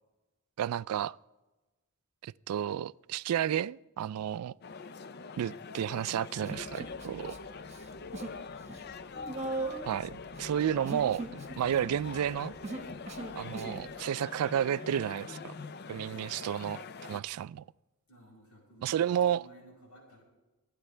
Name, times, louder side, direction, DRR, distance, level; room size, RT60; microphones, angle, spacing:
voice 1, 0.6-1.2 2.2-4.5 5.4-7.4 9.9-11.2 11.6-12.5 13.4-15.5 15.9-17.6 18.8-19.4, right 9 dB, 85° right, 0.3 m, -31 dB
sound 1, 4.6-17.2, left 4 dB, 45° left, 0.5 m, -44 dB
Human voice, 6.4-7.4 7.7-8.4 8.7-13.9, right 3 dB, 30° right, 1.4 m, -39 dB
voice 2, 18.1-20.2, right 1 dB, 90° left, 5.5 m, -56 dB
25.0 x 9.8 x 3.3 m
head